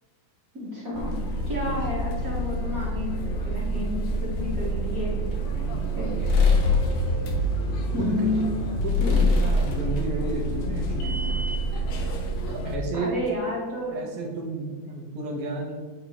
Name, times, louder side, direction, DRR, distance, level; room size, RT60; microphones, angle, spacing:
voice 1, 0.5-5.3 6.0-6.4 7.9-8.6 9.0-9.3 12.9-14.0, left 2 dB, 45° right, -6 dB, 1.2 m, -31 dB
sound 1, 0.9-12.8, left 1 dB, 70° left, 1.9 m, -26 dB
voice 2, 5.5-6.8 8.0-8.3 8.8-11.6 12.5-13.1 13.9-15.8, right 3 dB, 70° right, 0 dB, 1.5 m, -33 dB
8.7 x 3.4 x 4.0 m, 1.5 s
omnidirectional pair, 3.4 m